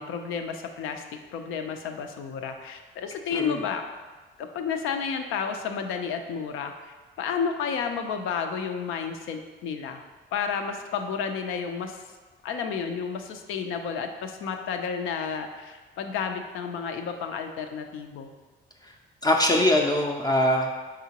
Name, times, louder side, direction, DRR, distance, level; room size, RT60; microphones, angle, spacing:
voice 1, 0.0-3.8 4.4-10.0 10.3-12.0 12.4-18.3, left 6 dB, 90° left, 5 dB, 0.5 m, -31 dB
voice 2, 19.2-20.8, left 1 dB, 20° left, 1 dB, 0.4 m, -22 dB
4.9 x 3.6 x 2.8 m, 1.3 s
cardioid pair, 90°, 20 cm